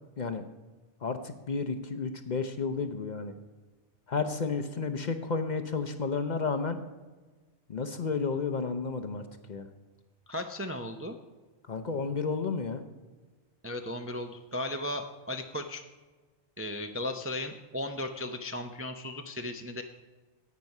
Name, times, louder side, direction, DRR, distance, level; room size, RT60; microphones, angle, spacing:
voice 1, 1.0-3.3 4.1-6.8 7.7-9.2 9.5-9.7 11.7-12.8, left 4 dB, 45° left, 8 dB, 0.7 m, -32 dB
voice 2, 10.3-11.2 13.6-15.8 16.6-19.8, left 1 dB, 20° right, 5 dB, 0.4 m, -36 dB
10.5 x 8.3 x 5.3 m, 1.3 s
omnidirectional pair, 1.2 m